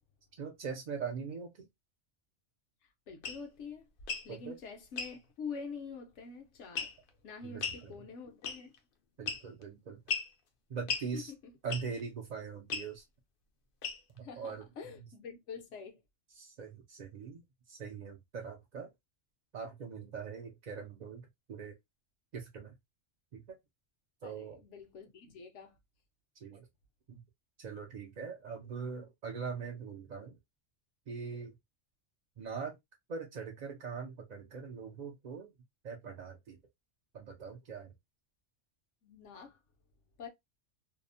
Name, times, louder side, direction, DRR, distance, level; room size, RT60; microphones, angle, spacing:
voice 1, 0.3-1.7 4.3-4.5 7.4-7.9 9.2-10.0 10.7-11.3 11.6-13.0 14.2-15.1 16.3-18.9 19.5-21.8 22.3-22.7 23.3-23.6 24.2-24.6 26.4-26.7 27.1-27.2 27.6-30.4 31.1-31.6 32.4-32.8 33.1-35.5 35.8-36.6 37.1-37.9, right 5 dB, 60° right, 0.4 m, -42 dB
voice 2, 3.1-3.9 4.2-7.0 7.2-8.7 11.1-11.5 14.2-16.0 24.2-25.8 39.0-39.6 40.2-40.3, left 5 dB, 75° left, 1.1 m, -46 dB
sound 1, 3.2-3.4 4.0-4.3 5.0-5.1 6.8-7.1 7.6-7.8 8.4-8.8 9.3-9.6 10.1-10.3 10.9-11.1 11.7-12.0 12.7-12.9 13.8-14.2, left 5 dB, 60° left, 0.6 m, -36 dB
2.8 x 2.0 x 2.5 m
omnidirectional pair, 1.2 m